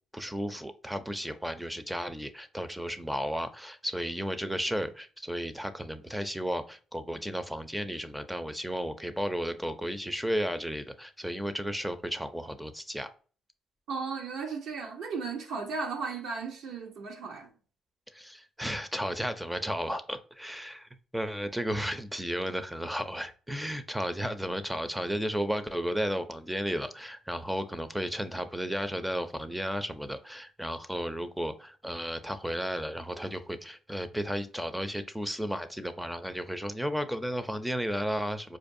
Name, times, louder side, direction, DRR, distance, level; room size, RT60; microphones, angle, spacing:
voice 1, 0.1-13.1 18.1-38.6, equal, 5° right, 0.5 m, -33 dB
voice 2, 13.9-17.5, right 4 dB, 75° right, 0.8 m, -35 dB
4.5 x 2.6 x 2.5 m
cardioid pair, 95°, 0 cm